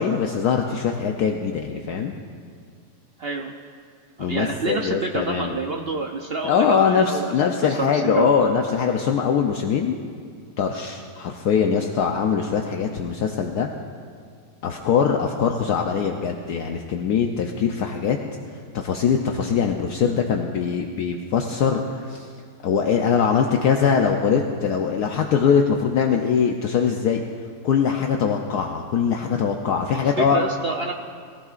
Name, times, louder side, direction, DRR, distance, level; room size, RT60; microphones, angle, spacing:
voice 1, 0.0-2.1 4.2-5.6 6.4-10.0 10.6-13.7 14.6-18.2 18.7-22.3 22.6-27.2 27.6-30.4, left 6 dB, 70° left, 2 dB, 1.2 m, -22 dB
voice 2, 3.2-3.5 4.2-7.3 7.6-8.3 29.9-30.9, right 4 dB, 75° right, 3 dB, 0.5 m, -28 dB
20.5 x 14.5 x 2.5 m, 2.2 s
omnidirectional pair, 1.9 m